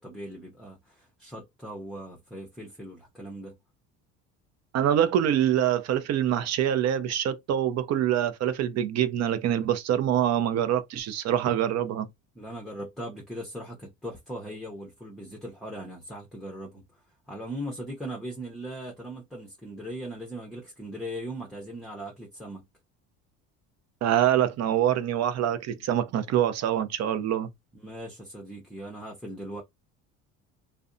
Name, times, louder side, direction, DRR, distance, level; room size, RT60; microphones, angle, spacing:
voice 1, 0.0-3.6 12.3-16.8 17.3-22.6 27.7-29.6, right 1 dB, ahead, 0.6 m, -39 dB
voice 2, 4.7-12.1 24.0-27.5, right 10 dB, 45° right, 0.6 m, -25 dB
2.5 x 2.1 x 2.5 m
supercardioid pair, 100°, 35 cm